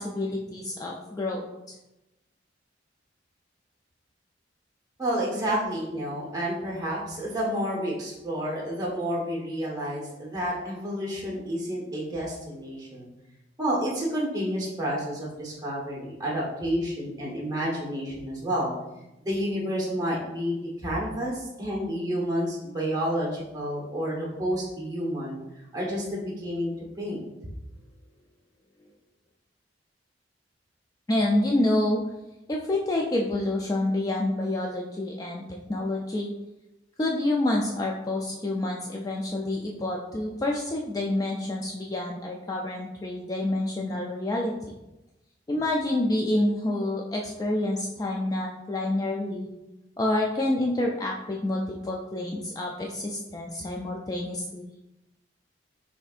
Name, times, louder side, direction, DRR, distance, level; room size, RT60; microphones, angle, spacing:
voice 1, 0.0-1.8 31.1-32.0 32.5-36.3 37.0-44.5 45.5-49.5 50.0-54.6, left 1 dB, 20° left, -1 dB, 0.3 m, -28 dB
voice 2, 5.0-13.1 13.6-18.7 19.2-25.4 25.7-26.7 27.0-27.2, equal, 20° right, -5 dB, 1.1 m, -30 dB
6.6 x 2.7 x 2.4 m, 0.95 s
head